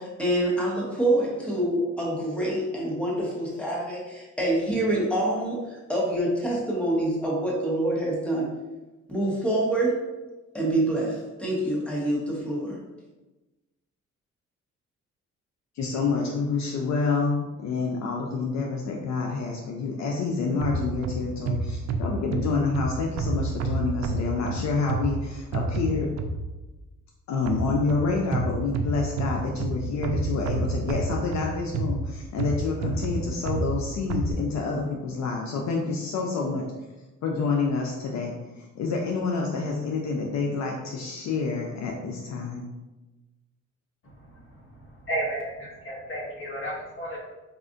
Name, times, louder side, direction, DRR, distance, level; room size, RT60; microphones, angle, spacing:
voice 1, 0.0-8.6 9.1-10.1 10.5-12.8, right 1 dB, 5° left, -4 dB, 1.1 m, -26 dB
voice 2, 15.8-26.1 27.3-36.7 37.2-42.7, left 4 dB, 65° left, 0 dB, 0.5 m, -28 dB
sound 1, 20.6-26.7 27.5-34.3, right 2 dB, 60° right, 0.5 m, -30 dB
voice 3, 44.0-47.2, right 1 dB, 45° left, -3 dB, 1.2 m, -34 dB
4.8 x 2.4 x 2.5 m, 1.1 s
cardioid pair, 90°, 30 cm